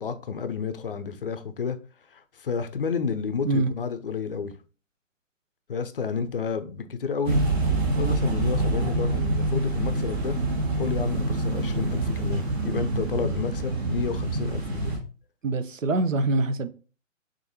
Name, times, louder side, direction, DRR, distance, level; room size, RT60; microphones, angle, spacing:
voice 1, 0.0-1.8 2.1-4.5 5.7-7.4 7.9-10.4 10.8-15.0, left 6 dB, 45° left, 0.5 m, -30 dB
sound 1, 7.2-15.0, right 2 dB, 55° right, 1.6 m, -26 dB
voice 2, 15.4-16.7, right 2 dB, 75° right, 0.7 m, -24 dB
6.4 x 2.6 x 2.8 m
figure-of-eight pair, 130°, 39 cm